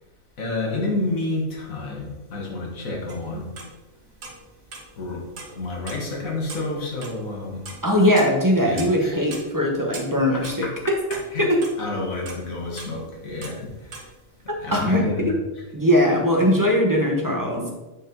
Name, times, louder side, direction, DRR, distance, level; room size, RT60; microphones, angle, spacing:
voice 1, 0.4-3.5 5.0-5.2 5.5-7.6 8.6-9.1 11.3-11.4 11.8-13.6 14.6-15.3, left 2 dB, 80° left, -2 dB, 2.0 m, -29 dB
Pendulum clock, 3.1-3.7 4.0-5.0 5.4-6.1 6.4-9.0 9.3-11.8 12.2-14.1, right 3 dB, 75° right, 1.6 m, -39 dB
voice 2, 7.8-11.0 11.4-11.7 14.5-15.4 15.7-17.7, equal, 15° right, 0 dB, 1.0 m, -20 dB
9.1 x 4.6 x 3.9 m, 1.1 s
omnidirectional pair, 1.4 m